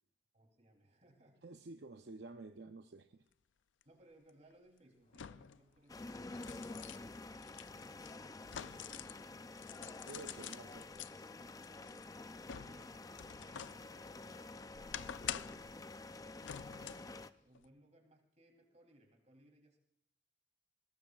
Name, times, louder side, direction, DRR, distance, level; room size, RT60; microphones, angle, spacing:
voice 1, 0.3-1.4 3.8-9.5 11.9-15.8 16.7-19.8, right 1 dB, 40° right, 2 dB, 3.2 m, -67 dB
voice 2, 1.4-3.2 10.1-11.3, right 3 dB, 65° right, 6 dB, 0.6 m, -51 dB
sound 1, 3.8-3.9 5.1-5.6 6.1-9.2 9.6-11.1 11.6-13.8 14.2-15.7 16.4-17.1 17.5-17.7, left 10 dB, 90° left, 0.4 m, -47 dB
sound 2, 5.0-15.8, left 1 dB, 35° left, 5.5 m, -74 dB
sound 3, 5.9-17.3, left 2 dB, 20° left, 0.4 m, -49 dB
21.0 x 19.0 x 2.4 m, 0.79 s
head